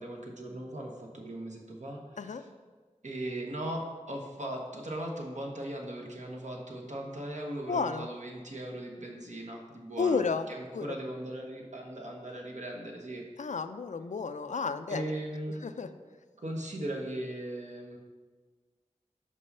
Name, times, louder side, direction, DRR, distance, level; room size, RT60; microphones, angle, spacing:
voice 1, 0.0-2.4 3.0-13.2 14.9-15.6 16.4-18.0, right 1 dB, 70° right, 0 dB, 1.2 m, -38 dB
voice 2, 7.7-8.1 10.0-10.5 10.7-10.9 13.4-15.1 15.6-15.9, left 5 dB, 75° left, 10 dB, 0.4 m, -31 dB
5.6 x 5.4 x 5.4 m, 1.4 s
wide cardioid pair, 50°, 13 cm